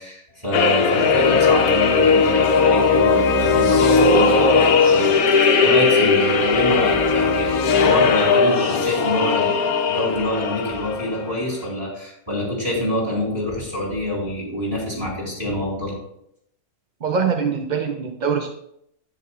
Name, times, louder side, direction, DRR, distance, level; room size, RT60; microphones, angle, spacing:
voice 1, 0.0-15.9, left 1 dB, 15° right, -5 dB, 4.0 m, -26 dB
sound 1, 0.5-11.3, left 4 dB, 75° left, 1.3 m, -18 dB
voice 2, 17.0-18.5, right 6 dB, 55° right, 4 dB, 0.5 m, -23 dB
10.5 x 9.4 x 2.4 m, 0.74 s
omnidirectional pair, 1.6 m